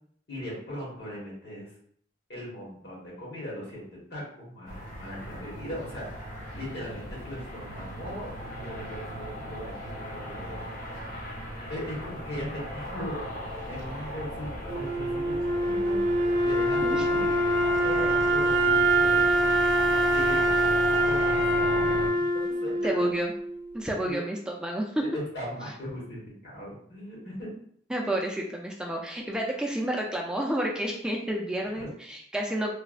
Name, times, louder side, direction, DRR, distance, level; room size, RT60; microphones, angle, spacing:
voice 1, 0.3-1.7 2.3-6.2 6.5-10.6 11.7-13.2 13.7-16.0 16.4-17.3 17.8-19.5 20.1-20.4 21.0-22.0 22.4-23.0 24.0-24.2 25.0-27.5 31.6-31.9, equal, 70° left, -5 dB, 1.3 m, -39 dB
sound 1, 4.7-22.1, left 1 dB, 50° left, 0.7 m, -37 dB
Wind instrument woodwind instrument, 14.7-23.7, right 1 dB, 85° right, 0.5 m, -24 dB
voice 2, 22.8-23.3 23.7-24.9 27.9-32.7, right 1 dB, 5° right, -1 dB, 0.3 m, -30 dB
3.1 x 2.1 x 2.4 m, 0.63 s
head